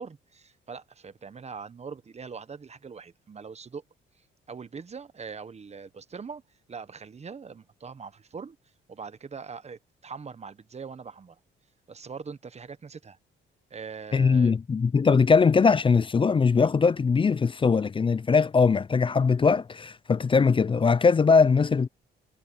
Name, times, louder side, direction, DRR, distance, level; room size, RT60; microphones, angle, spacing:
voice 1, 0.0-3.8 4.5-6.4 6.7-8.6 8.9-11.4 11.9-13.2 13.7-14.5, right 5 dB, 35° right, 1.1 m, -42 dB
voice 2, 14.1-21.9, left 5 dB, 25° left, 0.5 m, -21 dB
cardioid pair, 90°, 20 cm